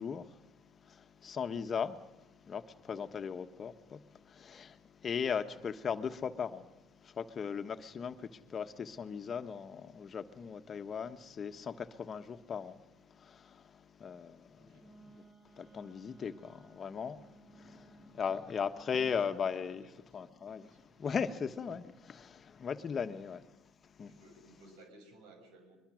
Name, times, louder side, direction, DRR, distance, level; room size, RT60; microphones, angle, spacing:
voice 1, 0.0-19.9 20.1-24.2, left 6 dB, 40° left, 1.3 m, -39 dB
voice 2, 14.6-14.9 18.0-18.2 18.9-19.9 20.2-20.3 20.6-21.0 23.0-23.1 24.1-25.8, right 2 dB, 85° right, 6.2 m, -59 dB
Wind instrument woodwind instrument, 14.8-19.2, right 4 dB, 30° right, 5.3 m, -60 dB
23.0 x 22.0 x 6.4 m
supercardioid pair, 85°, 0 cm